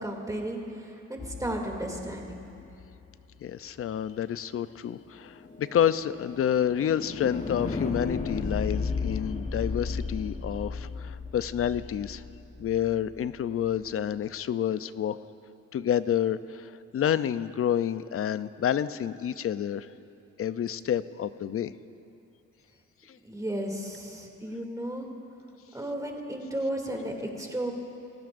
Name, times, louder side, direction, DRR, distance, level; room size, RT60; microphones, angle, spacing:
voice 1, 0.0-2.4 23.2-25.1 25.7-27.7, right 1 dB, 10° right, 0 dB, 2.6 m, -34 dB
sound 1, 1.2-3.3 5.2-13.2, left 4 dB, 25° left, 1.0 m, -35 dB
voice 2, 3.4-12.2 12.6-15.2 15.7-19.9 20.4-21.7 23.1-23.2, left 9 dB, 50° left, 14 dB, 0.6 m, -29 dB
27.5 x 15.0 x 2.6 m, 2.6 s
cardioid pair, 90°, 30 cm